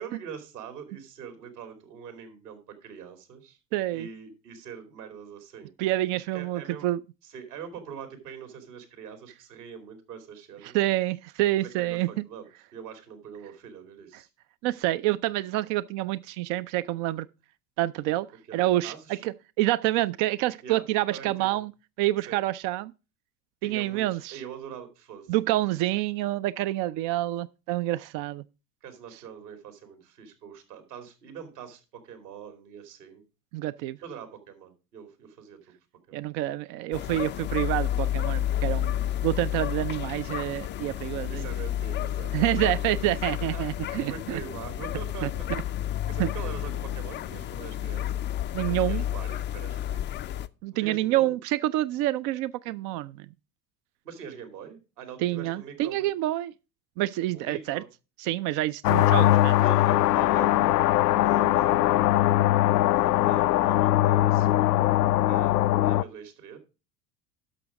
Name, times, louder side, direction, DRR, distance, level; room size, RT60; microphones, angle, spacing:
voice 1, 0.0-3.6 3.9-5.7 6.3-6.9 7.2-10.8 11.6-12.5 12.7-14.3 18.5-19.2 20.6-20.8 21.1-21.6 22.3-22.4 23.6-25.3 28.8-33.2 34.0-35.7 36.1-36.3 41.3-43.1 43.4-43.6 44.1-45.4 46.1-48.2 48.7-50.0 50.7-51.4 54.0-56.1 57.3-57.9 59.6-60.8 61.2-62.0 62.9-64.9 65.2-66.6, right 7 dB, 70° right, 2.8 m, -43 dB
voice 2, 3.7-4.1 5.8-7.0 10.6-12.2 14.6-17.3 17.8-18.3 18.5-18.9 19.2-21.7 22.0-22.9 23.6-24.4 25.3-28.4 33.5-34.0 36.1-39.0 39.2-41.4 42.3-44.4 45.2-45.6 46.2-46.3 48.5-49.0 50.6-53.3 55.2-56.5 57.0-57.8 58.2-59.6, right 16 dB, 40° right, 0.4 m, -27 dB
sound 1, 36.9-50.5, left 11 dB, 25° left, 0.4 m, -31 dB
sound 2, 58.8-66.0, left 15 dB, 75° left, 0.5 m, -21 dB
11.5 x 6.2 x 4.7 m
figure-of-eight pair, 70°, 48 cm